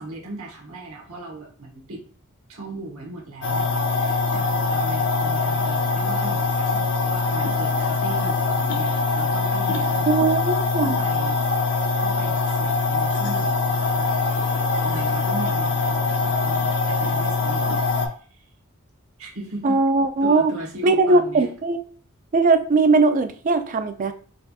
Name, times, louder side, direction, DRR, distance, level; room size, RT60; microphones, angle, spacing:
voice 1, 0.0-2.0 2.5-10.3 10.8-18.4 19.2-19.8 20.2-21.5, right 2 dB, 80° right, -1 dB, 1.2 m, -38 dB
sound 1, 3.4-18.1, left 3 dB, 60° left, 0.6 m, -23 dB
voice 2, 10.1-11.0 19.6-20.5 20.8-21.8 22.3-24.1, right 3 dB, 35° right, 8 dB, 0.3 m, -19 dB
4.2 x 2.8 x 2.4 m, 0.43 s
head